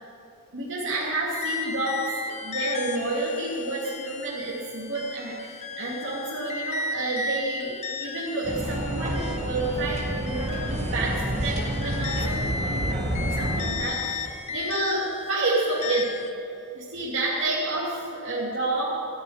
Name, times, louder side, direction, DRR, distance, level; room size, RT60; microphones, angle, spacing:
voice 1, 0.5-12.4 12.7-16.1 16.7-18.9, right 2 dB, 55° right, -7 dB, 2.4 m, -29 dB
sound 1, 1.3-16.3, left 4 dB, 30° left, 0.8 m, -35 dB
sound 2, 8.4-13.7, right 1 dB, 30° right, 1.9 m, -29 dB
13.5 x 7.1 x 9.3 m, 2.8 s
head